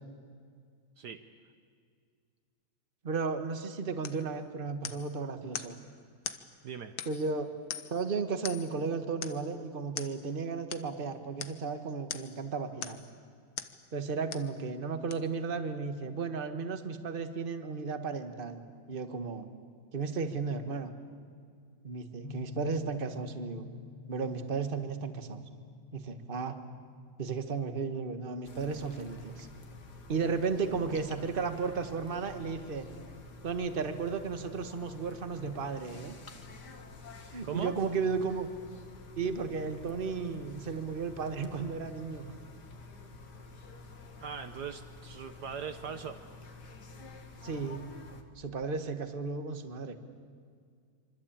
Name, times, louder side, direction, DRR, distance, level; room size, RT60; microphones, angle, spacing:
voice 1, 3.0-5.8 7.0-7.5 7.9-13.0 13.9-19.5 19.9-20.9 21.8-23.7 24.1-25.4 25.9-26.6 27.2-29.5 30.1-32.9 33.4-36.1 37.3-38.5 39.2-42.4 47.4-47.8 48.4-49.9, right 5 dB, 30° right, 8 dB, 1.5 m, -34 dB
sound 1, 4.0-4.3 4.8-5.1 5.5-5.8 6.2-6.5 7.0-7.3 7.7-8.0 8.4-8.8 9.2-9.5 10.0-10.2 10.7-10.9 11.4-11.6 12.1-12.4 12.8-13.1 13.6-13.8 14.3-14.5 15.1-15.2, left 9 dB, 85° left, 1.9 m, -40 dB
sound 2, 22.2-30.9, left 6 dB, 20° left, 1.0 m, -49 dB
sound 3, 28.4-48.2, left 3 dB, 60° left, 2.4 m, -49 dB
voice 2, 37.4-37.8 44.2-46.2, right 7 dB, 60° right, 8 dB, 1.5 m, -40 dB
26.0 x 25.0 x 8.8 m, 2.1 s
omnidirectional pair, 2.1 m